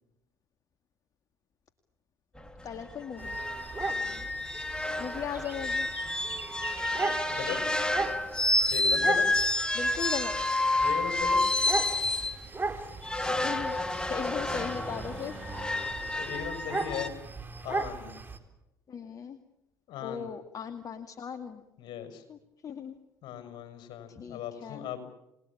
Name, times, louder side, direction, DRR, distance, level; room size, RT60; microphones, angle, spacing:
sound 1, 2.4-2.5 2.8-2.9 3.2-12.4 13.0-17.1, left 2 dB, 10° left, 3.2 m, -29 dB
voice 1, 2.6-3.4 5.0-5.9 9.7-10.4 13.3-13.7 14.0-15.4 18.9-19.4 20.0-21.6 22.3-22.4 22.6-23.0 24.1-24.9, left 7 dB, 45° left, 8 dB, 2.3 m, -37 dB
sound 2, 3.2-18.4, right 3 dB, 25° right, 4.2 m, -38 dB
voice 2, 3.8-4.2 7.3-7.7 8.7-9.3 10.8-11.5 16.2-17.2 17.6-18.2 19.9-20.3 21.8-22.2 23.2-25.0, left 9 dB, 60° left, 8 dB, 6.0 m, -38 dB
29.0 x 20.5 x 8.7 m, 0.89 s
hypercardioid pair, 60°, 9 cm